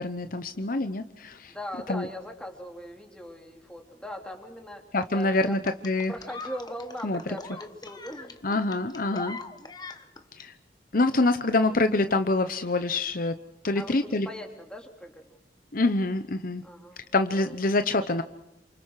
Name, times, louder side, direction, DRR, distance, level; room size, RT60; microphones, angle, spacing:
voice 1, 0.0-1.5 1.9-2.1 4.9-6.1 7.0-7.2 8.4-9.4 10.3-10.5 10.9-13.3 13.6-14.3 15.7-16.6 17.1-18.2, left 2 dB, 50° left, 9 dB, 0.9 m, -25 dB
voice 2, 1.5-4.9 5.1-5.7 6.1-8.7 13.7-15.4 16.6-17.0 17.3-17.5, equal, 5° left, 2 dB, 3.5 m, -40 dB
sound 1, 5.7-10.5 11.6-11.8, left 3 dB, 25° left, 1.4 m, -42 dB
29.0 x 26.5 x 4.9 m, 0.84 s
head